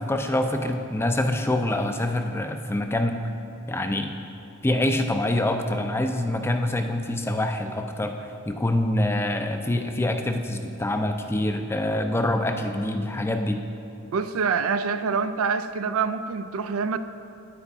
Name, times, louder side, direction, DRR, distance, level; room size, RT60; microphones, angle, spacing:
voice 1, 0.0-3.2 3.7-4.1 4.6-13.6, left 1 dB, 10° left, 6 dB, 0.4 m, -25 dB
voice 2, 14.1-17.0, right 5 dB, 75° right, 12 dB, 0.4 m, -26 dB
9.6 x 9.1 x 3.6 m, 2.7 s
head